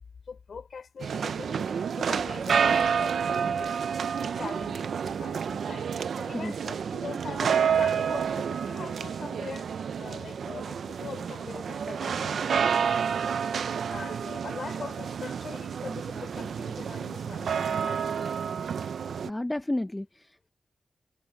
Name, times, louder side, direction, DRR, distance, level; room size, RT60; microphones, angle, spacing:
voice 1, 0.3-3.8 4.1-9.7 10.0-12.7 13.9-18.3, left 5 dB, 55° left, 4.6 m, -42 dB
sound 1, 1.0-19.3, right 7 dB, 80° right, 0.6 m, -29 dB
voice 2, 19.2-20.5, left 1 dB, 10° left, 0.7 m, -32 dB
wide cardioid pair, 170°, 0 cm